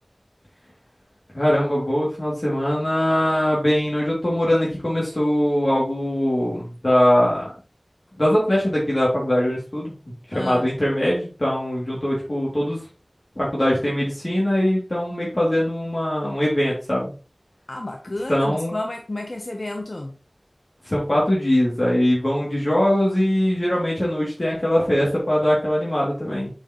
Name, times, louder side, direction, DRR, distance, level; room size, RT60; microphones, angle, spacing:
voice 1, 1.3-7.5 8.2-9.9 10.3-12.8 13.4-17.1 18.3-18.8 20.8-26.5, equal, 50° left, 2.5 m, -21 dB
voice 2, 10.3-10.7 17.7-20.1, left 2 dB, 75° left, 0.8 m, -31 dB
7.7 x 4.9 x 3.0 m
wide cardioid pair, 45°, 0 cm